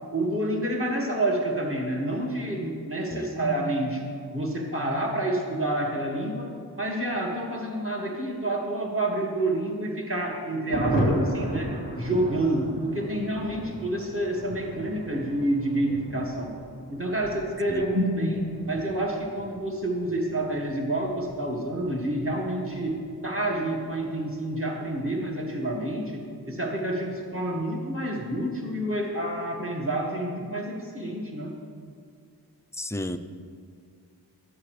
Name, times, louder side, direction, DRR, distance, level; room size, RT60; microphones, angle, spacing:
voice 1, 0.1-4.0 4.3-6.5 6.8-16.5 16.9-31.5, right 1 dB, 30° right, -2 dB, 1.9 m, -28 dB
Thunder, 10.7-26.8 27.1-27.2 27.5-27.6 27.9-28.3, equal, 55° right, 2.7 m, -36 dB
voice 2, 32.7-33.2, left 1 dB, 5° left, 8 dB, 0.4 m, -32 dB
12.5 x 8.4 x 3.3 m, 2.2 s
wide cardioid pair, 50°, 40 cm